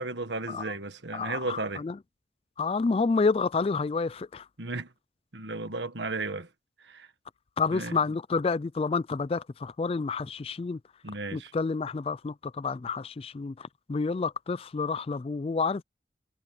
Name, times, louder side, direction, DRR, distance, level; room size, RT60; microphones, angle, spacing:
voice 1, 0.0-1.8 4.6-4.9 5.3-6.5 6.8-7.1 7.7-8.0 11.0-11.5, right 3 dB, 70° right, 1.5 m, -34 dB
voice 2, 1.1-2.0 2.6-4.5 7.6-10.8 11.3-15.8, left 4 dB, 30° left, 0.3 m, -29 dB
head